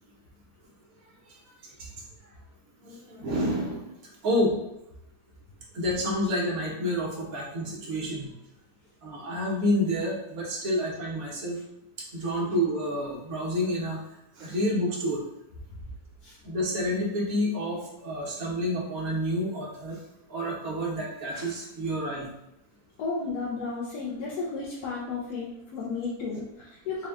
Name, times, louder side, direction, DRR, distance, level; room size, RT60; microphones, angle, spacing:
voice 1, 2.8-3.9 4.2-4.5 5.7-8.3 9.0-11.6 12.1-14.0 14.4-15.2 16.4-20.0 20.3-22.3, equal, 65° right, -3 dB, 1.4 m, -29 dB
voice 2, 23.0-27.1, left 4 dB, 80° left, -5 dB, 1.2 m, -33 dB
4.1 x 2.2 x 3.5 m, 0.84 s
omnidirectional pair, 1.6 m